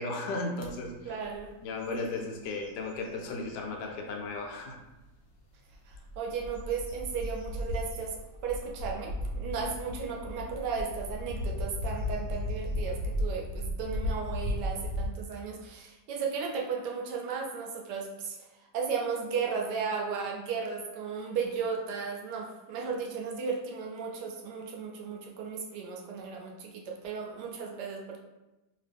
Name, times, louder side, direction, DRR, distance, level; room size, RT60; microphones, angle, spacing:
voice 1, 0.0-0.9 1.6-4.8, left 3 dB, 85° left, 2 dB, 1.2 m, -35 dB
sound 1, 0.6-0.7 1.2-1.5 1.8-3.3 3.9-4.0 5.7-15.1, left 1 dB, 60° left, 0.8 m, -35 dB
voice 2, 1.0-1.5 1.9-2.3 5.9-8.1 8.4-18.4 18.7-28.2, right 5 dB, 80° right, 0 dB, 1.2 m, -35 dB
2.9 x 2.8 x 3.4 m, 1.0 s
omnidirectional pair, 1.8 m